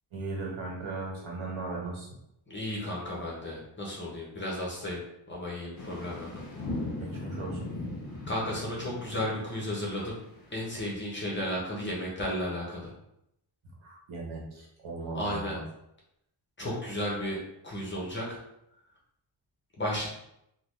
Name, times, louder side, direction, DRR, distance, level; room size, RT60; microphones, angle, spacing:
voice 1, 0.1-2.2 6.9-7.7 13.8-15.6, right 3 dB, 90° right, -2 dB, 1.1 m, -37 dB
voice 2, 2.5-5.0 5.3-6.3 8.3-10.2 10.5-12.9 15.1-15.6 16.6-18.4 19.8-20.1, left 1 dB, 25° left, -4 dB, 0.8 m, -33 dB
sound 1, 5.8-10.9, left 2 dB, 45° left, 1.1 m, -39 dB
3.7 x 2.2 x 3.1 m, 0.79 s
wide cardioid pair, 155°, 46 cm